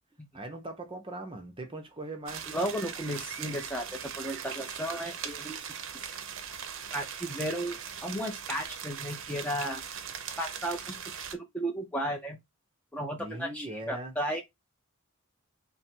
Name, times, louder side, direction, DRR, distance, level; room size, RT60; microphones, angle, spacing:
voice 1, 0.3-2.5 13.2-14.1, right 1 dB, 25° right, 0.8 m, -40 dB
sound 1, 2.3-11.3, right 7 dB, 60° right, 0.6 m, -40 dB
voice 2, 2.5-5.6 6.9-9.8 10.4-11.0 11.3-12.4 12.9-14.4, right 1 dB, 5° left, 0.6 m, -34 dB
3.3 x 2.5 x 4.4 m
head